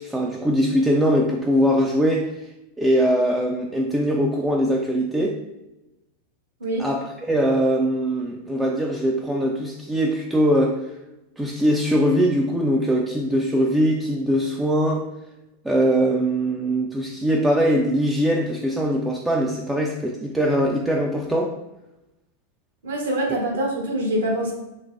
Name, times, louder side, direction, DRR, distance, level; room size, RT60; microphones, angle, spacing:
voice 1, 0.0-2.3 2.8-5.4 6.8-10.8 11.4-15.1 15.6-21.5, equal, 5° right, 0 dB, 0.3 m, -21 dB
voice 2, 22.8-24.5, right 1 dB, 65° right, -2 dB, 1.0 m, -24 dB
3.8 x 2.8 x 2.4 m, 0.95 s
figure-of-eight pair, 90°, 0 cm